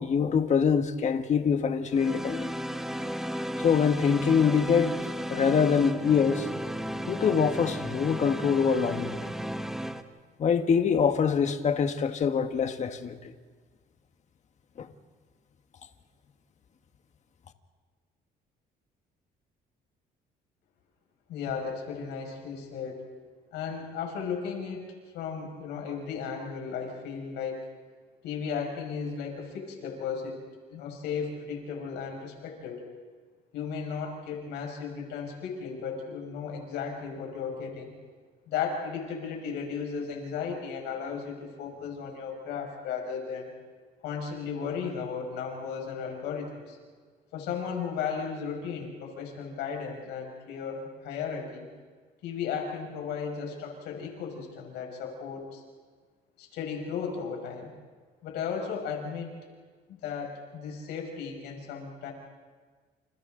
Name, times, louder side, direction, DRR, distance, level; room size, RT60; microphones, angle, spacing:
voice 1, 0.0-2.5 3.6-4.9 5.3-6.5 7.1-9.3 10.4-13.3 14.8-14.9, left 6 dB, 45° left, 1.5 m, -24 dB
sound 1, 1.9-10.0, equal, ahead, 1.2 m, -34 dB
voice 2, 21.3-23.1 23.5-24.9 25.1-27.6 28.2-30.4 30.7-32.8 33.5-37.9 38.5-43.5 44.0-46.8 47.3-51.7 52.2-55.6 56.4-57.7 58.2-59.4 60.0-62.1, left 6 dB, 85° left, 5.8 m, -35 dB
29.5 x 28.5 x 3.9 m
cardioid pair, 110°, 17 cm